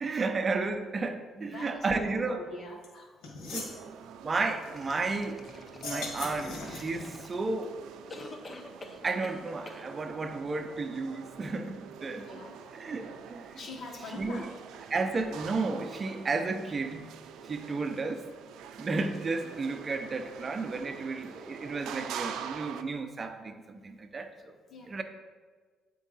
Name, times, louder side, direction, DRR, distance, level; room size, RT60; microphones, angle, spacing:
voice 1, 0.0-2.4 3.5-3.9 4.2-5.4 5.8-7.8 9.0-12.3 12.7-13.6 14.2-14.5 14.9-17.1 17.4-18.3 18.8-24.5 24.9-25.0, right 3 dB, 30° right, 7 dB, 0.6 m, -33 dB
voice 2, 1.3-3.1 12.1-12.6 13.5-14.5 24.7-25.0, left 2 dB, 50° left, 0 dB, 1.4 m, -44 dB
sound 1, 2.8-2.9 3.2-3.8 5.7-7.0, left 3 dB, 85° left, 1.6 m, -39 dB
sound 2, 3.7-22.8, right 8 dB, 85° right, 0.4 m, -46 dB
sound 3, 4.7-7.6 8.1-9.4 9.7-9.8, left 2 dB, 25° left, 0.6 m, -46 dB
8.4 x 4.6 x 4.1 m, 1.5 s
cardioid pair, 120°, 0 cm